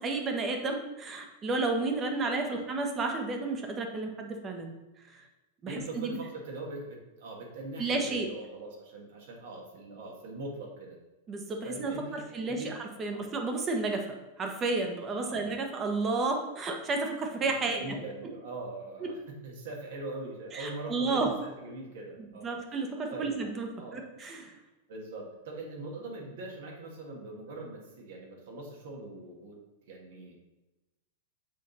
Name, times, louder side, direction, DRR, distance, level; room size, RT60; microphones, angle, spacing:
voice 1, 0.0-4.7 5.1-5.2 5.6-6.2 7.8-8.3 11.3-14.1 14.4-18.0 19.0-19.1 20.5-21.4 22.2-23.7 23.9-24.5, right 3 dB, 25° right, 3 dB, 1.1 m, -32 dB
voice 2, 5.6-10.9 11.6-12.7 13.1-13.2 15.2-15.4 17.7-22.5 23.1-23.3 23.8-24.1 24.9-29.6 29.9-30.4, right 2 dB, 70° right, 0 dB, 1.6 m, -42 dB
6.4 x 4.2 x 4.1 m, 1.1 s
hypercardioid pair, 110°, 0 cm